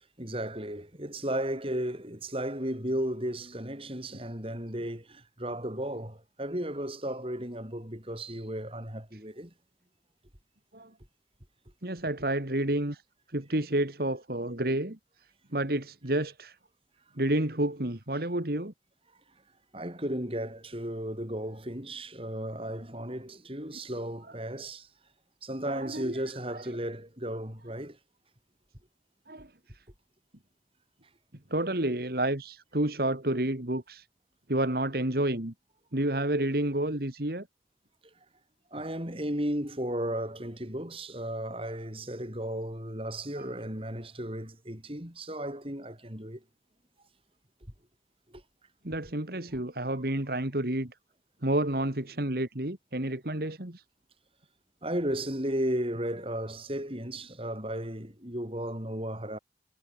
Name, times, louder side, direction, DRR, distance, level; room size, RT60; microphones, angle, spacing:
voice 1, 0.2-9.5 19.7-24.9 25.4-28.0 38.7-46.4 48.3-48.4 54.8-59.4, right 1 dB, 30° right, 6.1 m, -34 dB
voice 2, 11.8-13.0 13.3-15.0 15.5-16.6 17.2-18.7 24.2-24.4 25.6-26.7 29.3-29.5 31.5-34.1 34.5-35.5 35.9-37.5 43.3-43.6 48.8-50.9 51.4-53.8, right 1 dB, 55° right, 2.4 m, -30 dB
head